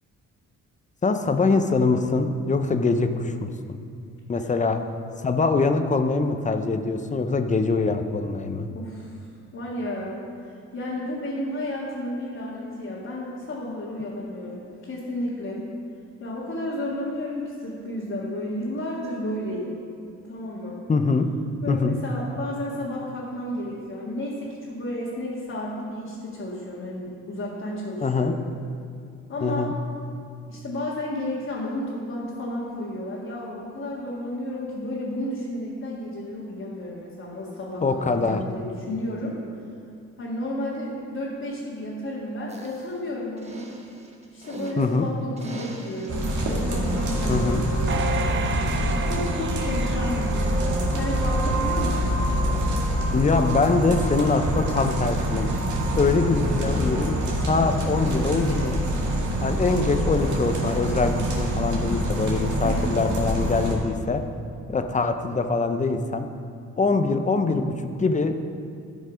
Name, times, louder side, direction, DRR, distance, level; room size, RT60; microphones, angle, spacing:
voice 1, 1.0-3.8 4.3-4.8 5.2-8.7 20.9-21.3 21.7-22.0 28.0-28.3 29.4-29.7 37.8-38.4 44.8-45.1 47.3-47.6 53.1-55.5 56.0-57.2 57.4-58.8 59.4-64.2 64.7-66.3 66.8-67.7 68.0-68.3, left 3 dB, 25° left, 7 dB, 0.6 m, -23 dB
voice 2, 8.7-9.3 9.5-15.7 16.2-19.8 20.3-20.8 21.6-28.4 29.3-29.7 30.5-39.4 40.2-43.7 44.3-48.6 49.0-52.7 62.6-63.1, left 1 dB, 45° left, -7 dB, 1.8 m, -32 dB
sound 1, 42.5-42.9 43.4-44.9 45.4-46.3 46.9-47.3, right 1 dB, 20° right, 1.2 m, -40 dB
sound 2, 46.1-63.7, equal, 70° right, 1.9 m, -25 dB
sound 3, 47.9-51.3 51.8-51.9, right 7 dB, 40° right, 0.6 m, -33 dB
11.5 x 5.3 x 5.1 m, 2.4 s
cardioid pair, 90°, 30 cm